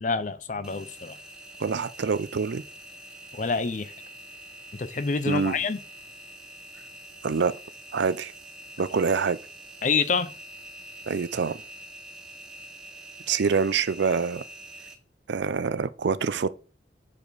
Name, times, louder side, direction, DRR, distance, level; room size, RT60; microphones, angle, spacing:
voice 1, 0.0-1.2 3.3-3.9 4.7-5.8 9.8-10.3, left 4 dB, 45° left, 0.6 m, -27 dB
Engine, 0.6-14.9, right 1 dB, 5° right, 1.1 m, -45 dB
voice 2, 1.6-2.6 5.2-5.5 7.2-7.5 7.9-8.3 8.8-9.4 11.1-11.6 13.3-14.4 15.3-16.5, right 5 dB, 80° right, 0.5 m, -25 dB
7.0 x 4.9 x 4.1 m
head